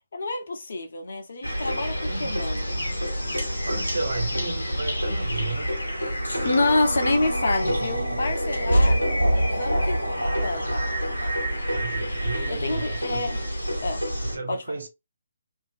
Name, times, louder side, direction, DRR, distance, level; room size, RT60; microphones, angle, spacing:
voice 1, 0.1-2.6 6.4-10.0 10.4-10.8 12.5-13.4 13.8-14.0 14.5-14.6, left 2 dB, 55° left, 0.9 m, -27 dB
sound 1, 1.4-14.4, equal, 80° left, 1.0 m, -26 dB
voice 2, 2.0-2.5 3.7-5.7 7.6-8.4 11.7-13.3 14.2-14.9, right 3 dB, 65° right, 0.8 m, -34 dB
2.8 x 2.7 x 2.6 m
figure-of-eight pair, 135°, 0 cm